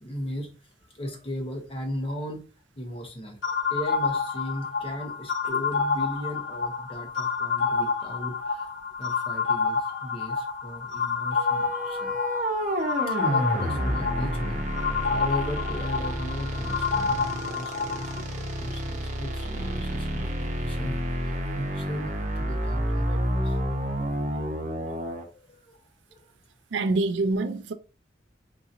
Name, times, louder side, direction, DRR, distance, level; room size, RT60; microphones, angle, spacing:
voice 1, 0.0-0.5 0.9-2.4 2.8-3.4 3.7-8.7 9.0-12.2 13.1-23.6 24.3-24.4 24.8-25.8 26.1-26.3, equal, 30° left, 0.8 m, -37 dB
sound 1, 3.4-18.2, left 5 dB, 80° left, 0.7 m, -29 dB
sound 2, 11.4-25.2, equal, 40° right, 0.8 m, -30 dB
voice 2, 26.7-27.7, right 2 dB, 75° right, 0.4 m, -25 dB
3.9 x 2.8 x 2.5 m
head